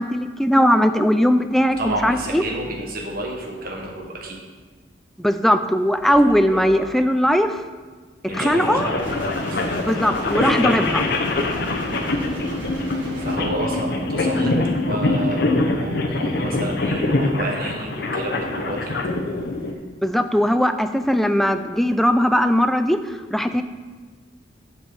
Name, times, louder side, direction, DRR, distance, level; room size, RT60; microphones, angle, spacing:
voice 1, 0.0-2.4 5.2-7.6 8.4-8.9 9.9-11.0 20.0-23.0 23.3-23.6, equal, ahead, 8 dB, 0.3 m, -19 dB
voice 2, 1.8-4.4 6.1-6.9 8.3-9.8 10.4-10.6 13.2-14.6 14.8-19.0, right 1 dB, 50° right, 0 dB, 1.4 m, -31 dB
sound 1, 8.3-19.7, left 2 dB, 55° left, 0.8 m, -24 dB
sound 2, 9.0-13.4, equal, 85° right, 1.7 m, -34 dB
7.7 x 4.5 x 6.9 m, 1.4 s
head